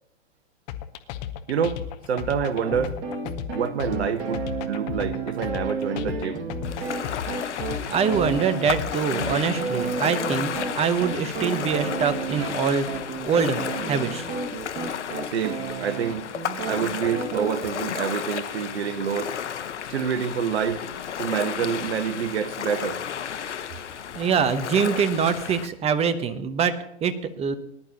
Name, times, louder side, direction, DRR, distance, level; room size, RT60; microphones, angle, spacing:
sound 1, 0.7-9.3, left 10 dB, 35° left, 1.0 m, -34 dB
voice 1, 1.5-1.8 2.1-2.9 3.5-6.4 15.3-16.2 16.6-19.3 19.9-20.8 21.2-23.0, right 7 dB, 65° right, 1.3 m, -27 dB
sound 2, 2.6-17.5, right 5 dB, 40° right, 2.1 m, -32 dB
Ocean, 6.6-25.7, left 8 dB, 75° left, 1.1 m, -33 dB
voice 2, 7.9-12.9 13.3-13.6 13.9-14.3 24.1-27.6, right 6 dB, 20° right, 0.9 m, -24 dB
19.0 x 11.0 x 2.9 m
hypercardioid pair, 115°, 35 cm